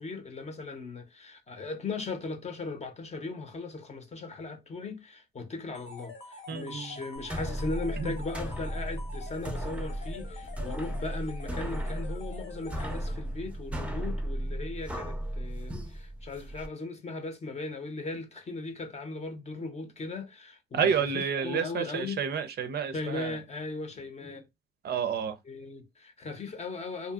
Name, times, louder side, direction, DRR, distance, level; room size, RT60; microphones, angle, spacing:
voice 1, 0.0-22.2 22.9-24.4 25.4-27.1, left 3 dB, 35° left, 0.7 m, -38 dB
sound 1, 5.7-13.5, left 4 dB, 75° left, 1.0 m, -46 dB
voice 2, 6.5-6.9 8.0-8.1 20.7-23.4 24.8-25.4, right 7 dB, 55° right, 0.5 m, -30 dB
sound 2, 7.2-16.7, right 1 dB, 5° right, 0.5 m, -35 dB
2.7 x 2.5 x 2.3 m
cardioid pair, 90°, 20 cm